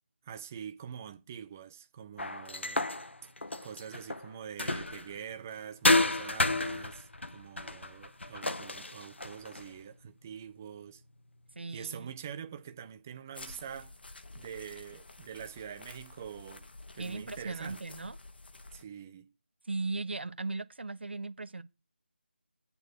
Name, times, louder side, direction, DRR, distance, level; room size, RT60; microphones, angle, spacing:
voice 1, 0.2-2.9 3.6-11.0 11.7-13.9 14.3-16.7 16.9-17.8 18.7-19.3, right 8 dB, 15° right, 0.3 m, -45 dB
sound 1, 2.2-5.2 5.8-9.7, left 2 dB, 85° left, 1.0 m, -31 dB
voice 2, 11.5-12.1 17.0-18.2 19.6-21.6, right 3 dB, 70° right, 0.9 m, -37 dB
sound 2, 13.3-18.8, left 2 dB, 60° left, 1.3 m, -50 dB
8.0 x 4.4 x 6.6 m
figure-of-eight pair, 165°, 6 cm